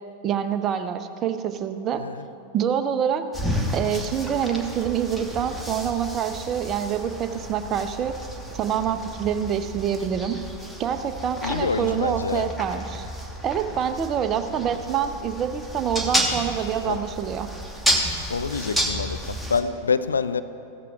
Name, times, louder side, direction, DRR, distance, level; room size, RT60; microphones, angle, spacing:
voice 1, 0.2-2.0 2.5-3.3 3.7-8.1 8.5-10.4 10.8-13.1 13.4-17.5, right 8 dB, 30° right, 0.6 m, -26 dB
voice 2, 1.9-2.3 11.4-12.5 16.8-17.0 18.3-20.4, left 5 dB, 75° left, 0.4 m, -27 dB
sound 1, 3.3-19.6, equal, ahead, 1.2 m, -31 dB
15.5 x 13.5 x 2.4 m
figure-of-eight pair, 90°, 0 cm